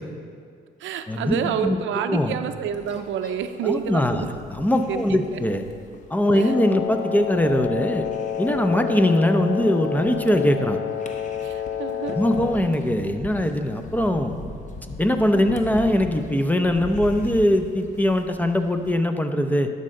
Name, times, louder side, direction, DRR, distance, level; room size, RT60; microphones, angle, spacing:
voice 1, 0.8-4.3 4.9-5.4 6.3-6.6 11.4-12.2, right 8 dB, 75° right, 9 dB, 0.5 m, -29 dB
sound 1, 2.5-18.9, left 2 dB, 40° left, 0.9 m, -41 dB
voice 2, 3.6-5.6 6.1-8.1 8.4-10.8 12.1-14.3 15.0-19.7, left 1 dB, 10° left, 7 dB, 0.6 m, -21 dB
Wind instrument woodwind instrument, 6.2-12.7, left 9 dB, 80° left, 1.2 m, -29 dB
12.0 x 5.3 x 3.8 m, 2.2 s
cardioid pair, 90°, 20 cm